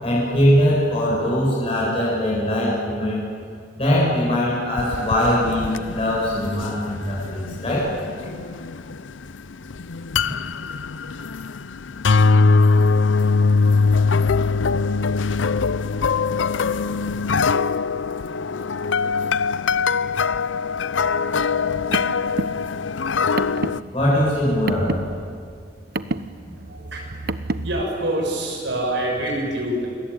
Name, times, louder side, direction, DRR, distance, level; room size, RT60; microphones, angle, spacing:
voice 1, 0.0-3.2 3.8-7.9 8.2-8.3 23.9-25.1 29.2-29.3, left 1 dB, 30° left, -6 dB, 7.8 m, -21 dB
sound 1, 4.8-23.8, left 4 dB, 85° left, 0.6 m, -22 dB
Car, 21.6-27.8, right 2 dB, 55° right, 1.0 m, -30 dB
voice 2, 26.6-29.9, right 1 dB, 70° right, -1 dB, 6.5 m, -26 dB
29.0 x 22.0 x 8.9 m, 2.2 s
head